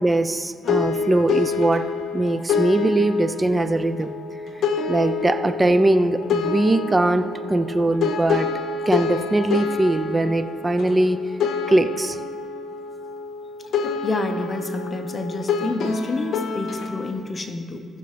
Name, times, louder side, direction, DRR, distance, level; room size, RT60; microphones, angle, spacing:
voice 1, 0.0-4.1 4.9-8.5 8.9-11.2 11.7-12.2, right 1 dB, 20° right, 10 dB, 0.5 m, -21 dB
sound 1, 0.6-17.1, left 5 dB, 70° left, 0.8 m, -27 dB
voice 2, 14.0-17.9, left 3 dB, 30° left, 6 dB, 0.8 m, -29 dB
17.0 x 6.6 x 3.3 m, 2.1 s
cardioid pair, 90°, 0 cm